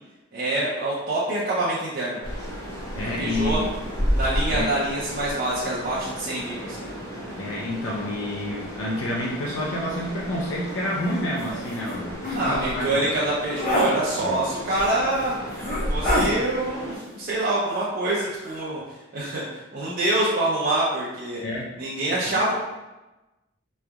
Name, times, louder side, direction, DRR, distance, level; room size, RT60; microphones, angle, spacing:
voice 1, 0.3-2.2 3.2-3.6 4.1-6.9 12.3-15.3 15.9-21.4 21.8-22.5, right 1 dB, 50° right, -8 dB, 0.6 m, -26 dB
sound 1, 2.2-17.0, equal, 15° left, 0.9 m, -32 dB
voice 2, 3.0-3.7 4.5-4.7 7.4-13.0 14.2-14.4 21.4-21.7 22.2-22.4, left 1 dB, 85° left, -4 dB, 0.5 m, -29 dB
sound 2, 11.4-11.5 11.8-12.0 12.2-12.4 12.9-13.1 13.5-13.9 14.8-14.9 15.5-16.3 17.7-18.1 18.4-18.6, left 1 dB, 45° left, 1.3 m, -26 dB
3.8 x 3.2 x 2.3 m, 1.1 s
head